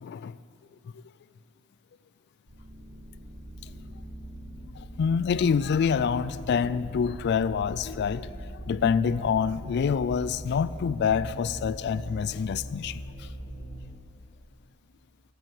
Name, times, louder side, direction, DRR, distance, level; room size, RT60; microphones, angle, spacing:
voice 1, 0.0-0.3 5.0-8.3 8.7-13.0, left 6 dB, 55° left, 0.3 m, -26 dB
sound 1, 2.5-13.9, right 1 dB, 40° right, 2.0 m, -41 dB
14.5 x 8.5 x 6.5 m
head